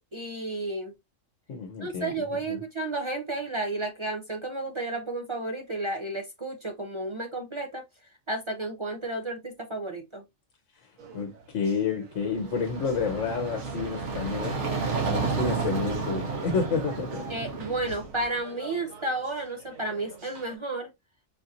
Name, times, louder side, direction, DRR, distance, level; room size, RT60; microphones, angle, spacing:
voice 1, 0.1-0.9 1.8-7.8 8.3-10.2 17.3-20.9, right 2 dB, 45° right, 0.4 m, -32 dB
voice 2, 1.5-2.6 11.1-14.6 15.1-17.2, left 5 dB, 70° left, 1.1 m, -30 dB
sound 1, 11.0-20.6, right 4 dB, 85° right, 1.5 m, -48 dB
sound 2, 12.2-18.2, right 4 dB, 60° right, 1.4 m, -31 dB
5.1 x 2.8 x 2.4 m
omnidirectional pair, 1.4 m